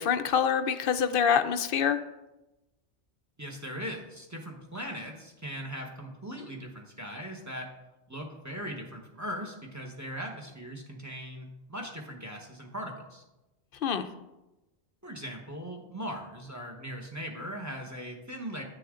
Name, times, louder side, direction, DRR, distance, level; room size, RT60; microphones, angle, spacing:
voice 1, 0.0-2.0 13.8-14.0, left 7 dB, 60° left, 10 dB, 0.7 m, -25 dB
voice 2, 3.4-7.7 8.1-13.2 15.0-18.6, equal, 15° right, 2 dB, 1.0 m, -39 dB
9.4 x 6.7 x 3.7 m, 1.0 s
omnidirectional pair, 1.2 m